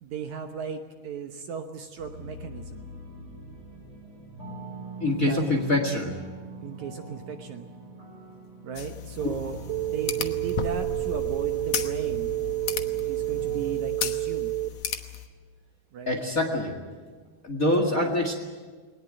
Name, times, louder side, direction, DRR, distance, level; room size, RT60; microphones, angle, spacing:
voice 1, 0.0-2.9 5.0-5.4 6.6-7.7 8.6-12.3 13.0-14.5 15.9-16.2, right 6 dB, 65° right, 5 dB, 2.0 m, -36 dB
sound 1, 2.0-13.7, right 1 dB, 30° right, 7.8 m, -42 dB
voice 2, 5.0-6.2 16.1-16.7 17.4-18.3, left 1 dB, 35° left, 3 dB, 1.5 m, -25 dB
sound 2, 8.8-15.3, left 8 dB, 70° left, 1.6 m, -35 dB
sound 3, 9.7-14.7, right 19 dB, 85° right, 2.9 m, -29 dB
21.0 x 19.5 x 8.9 m, 1.4 s
omnidirectional pair, 4.6 m